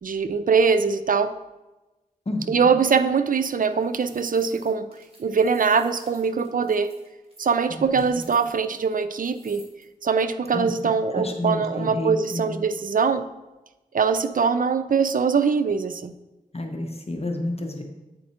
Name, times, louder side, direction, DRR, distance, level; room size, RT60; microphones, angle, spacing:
voice 1, 0.0-1.3 2.5-4.9 5.2-6.9 7.4-9.6 10.0-13.3 13.9-16.1, right 5 dB, 65° right, 10 dB, 0.4 m, -22 dB
voice 2, 2.3-2.7 7.7-8.0 10.5-10.7 11.1-12.6 16.5-17.8, left 1 dB, 45° left, 3 dB, 0.9 m, -30 dB
sound 1, 3.7-9.8, right 1 dB, 40° right, 2.1 m, -53 dB
8.6 x 4.2 x 4.3 m, 1.1 s
cardioid pair, 50°, 15 cm